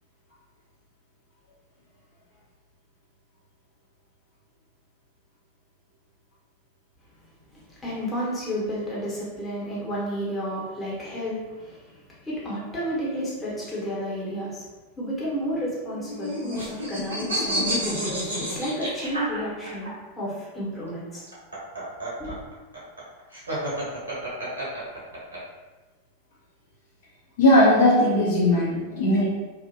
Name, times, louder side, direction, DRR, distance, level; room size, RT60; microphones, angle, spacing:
voice 1, 7.5-11.9 12.2-14.6 15.0-19.9 20.2-21.2 22.2-22.4, equal, 15° left, -7 dB, 1.1 m, -31 dB
sound 1, 15.9-19.9 21.1-25.4, equal, 75° right, 0.8 m, -30 dB
voice 2, 27.4-29.2, left 1 dB, 60° left, -7 dB, 0.8 m, -18 dB
2.8 x 2.4 x 2.6 m, 1.2 s
figure-of-eight pair, 90°, 0 cm